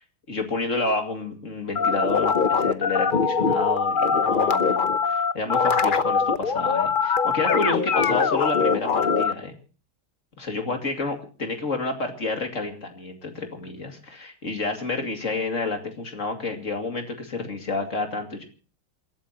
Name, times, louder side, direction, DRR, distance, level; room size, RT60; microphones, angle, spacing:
voice 1, 0.3-9.6 10.4-18.4, left 3 dB, 40° left, 5 dB, 2.7 m, -30 dB
sound 1, 1.8-9.3, left 5 dB, 65° left, 0.5 m, -22 dB
28.0 x 13.0 x 2.9 m, 0.37 s
omnidirectional pair, 2.2 m